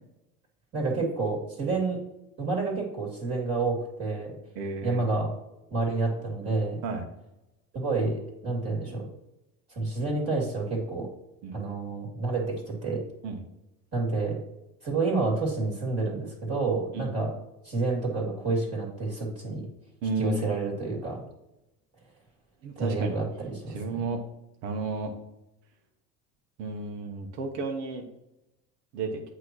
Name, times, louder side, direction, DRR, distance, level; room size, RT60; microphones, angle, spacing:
voice 1, 0.7-2.1 2.4-4.4 4.8-5.3 5.7-6.8 7.7-9.1 9.7-11.1 11.5-13.0 13.9-14.4 14.8-17.3 17.6-19.7 20.2-21.2 22.8-24.0, right 3 dB, 35° right, -2 dB, 2.7 m, -29 dB
voice 2, 4.5-5.1 6.8-7.0 11.4-11.6 13.2-13.4 16.9-17.1 20.0-20.6 22.6-23.2 23.7-24.2 24.6-25.1 26.6-28.0 28.9-29.2, right 3 dB, 65° right, 3 dB, 1.3 m, -32 dB
8.2 x 3.1 x 6.2 m, 0.91 s
hypercardioid pair, 90°, 43 cm